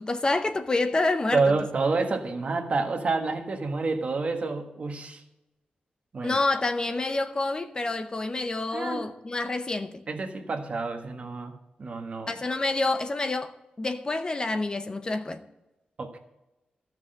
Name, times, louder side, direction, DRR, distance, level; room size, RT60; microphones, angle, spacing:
voice 1, 0.0-1.5 6.2-10.0 12.3-13.5 13.8-15.4, left 2 dB, 25° left, 0.6 m, -28 dB
voice 2, 1.3-5.2 6.1-6.4 8.7-9.1 10.1-11.5 11.8-12.4 16.0-16.2, right 3 dB, 45° right, 1.4 m, -28 dB
14.0 x 6.1 x 7.7 m
wide cardioid pair, 150°, 3 cm